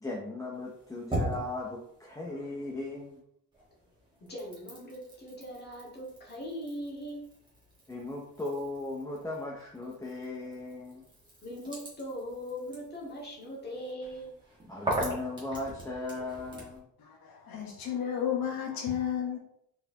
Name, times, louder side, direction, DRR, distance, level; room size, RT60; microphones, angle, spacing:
voice 1, 0.0-3.2 7.9-11.0 14.7-16.8, left 2 dB, 10° left, -2 dB, 0.4 m, -37 dB
sound 1, 0.5-3.2 3.5-16.8, right 1 dB, 15° right, 1.4 m, -41 dB
voice 2, 4.3-7.3 11.4-14.3, equal, 30° left, -4 dB, 1.5 m, -40 dB
voice 3, 17.0-19.4, left 9 dB, 85° left, 0 dB, 1.1 m, -32 dB
4.4 x 4.3 x 2.7 m, 0.72 s
cardioid pair, 170°, 35 cm